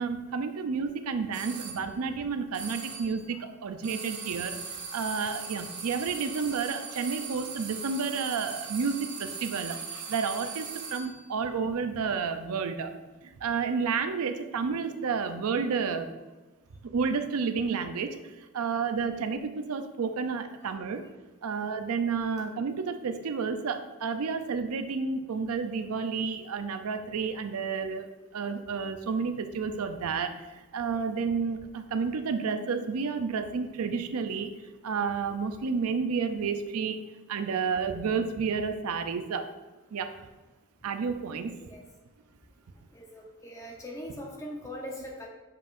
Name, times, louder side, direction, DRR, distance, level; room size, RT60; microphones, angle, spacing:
voice 1, 0.0-4.6 4.9-12.9 13.2-16.1 16.9-18.2 18.5-21.0 21.4-30.5 30.7-34.5 34.8-37.0 37.3-39.5 39.9-40.1 40.8-41.6, right 5 dB, 85° right, 8 dB, 0.5 m, -31 dB
sound 1, 1.3-1.8 2.5-3.2 3.8-11.2, right 5 dB, 50° right, 0.9 m, -39 dB
voice 2, 42.9-45.3, equal, 15° left, -1 dB, 0.8 m, -41 dB
7.4 x 5.2 x 2.5 m, 1.2 s
head